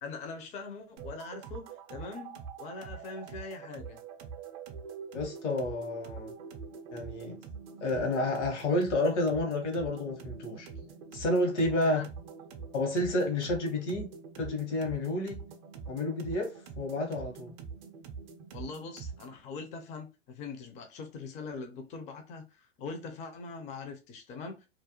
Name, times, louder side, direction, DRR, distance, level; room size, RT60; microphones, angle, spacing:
voice 1, 0.0-4.0 11.8-12.1 18.5-24.7, left 4 dB, 20° left, 0.4 m, -42 dB
sound 1, 1.0-19.4, right 6 dB, 40° right, 0.5 m, -45 dB
voice 2, 5.1-6.3 6.9-7.4 7.8-10.7 11.1-12.0 12.7-14.1 14.4-15.4 15.9-17.5, left 1 dB, 70° left, 1.1 m, -30 dB
2.4 x 2.1 x 2.8 m
hypercardioid pair, 105°, 36 cm